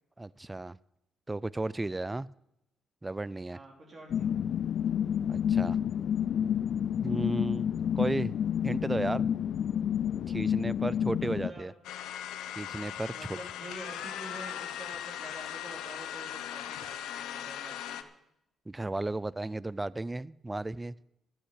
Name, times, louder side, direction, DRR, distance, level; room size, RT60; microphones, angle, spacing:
voice 1, 0.2-0.8 1.3-2.3 3.0-3.6 5.3-5.8 7.0-8.4 8.6-9.3 10.3-11.7 12.6-13.1 18.7-20.9, right 2 dB, 15° right, 21 dB, 0.4 m, -34 dB
voice 2, 3.5-4.4 10.8-11.7 13.1-18.0, right 1 dB, 40° right, 0 dB, 3.4 m, -47 dB
sound 1, 4.1-11.5, left 9 dB, 65° left, 0.4 m, -29 dB
sound 2, 11.8-18.0, left 10 dB, 90° left, 0.9 m, -39 dB
13.0 x 8.6 x 8.3 m, 0.83 s
cardioid pair, 90°, 0 cm